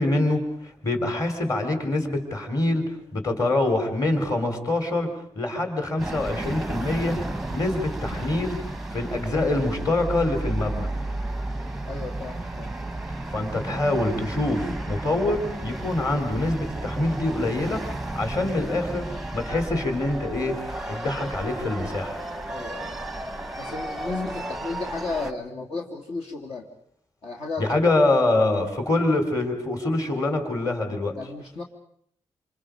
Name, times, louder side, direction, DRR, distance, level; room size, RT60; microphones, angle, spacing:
voice 1, 0.0-5.1 5.4-7.2 7.5-8.6 8.9-10.9 13.3-17.8 18.1-19.1 19.3-20.6 20.9-22.2 27.6-31.2, left 2 dB, 30° left, 5 dB, 3.7 m, -25 dB
sound 1, 6.0-25.3, right 2 dB, 5° right, 1.0 m, -33 dB
voice 2, 11.9-12.7 22.5-23.0 23.6-26.7 27.2-27.9 31.1-31.6, left 3 dB, 60° left, 0 dB, 2.8 m, -34 dB
27.5 x 27.5 x 5.2 m, 0.65 s
wide cardioid pair, 175°, 12 cm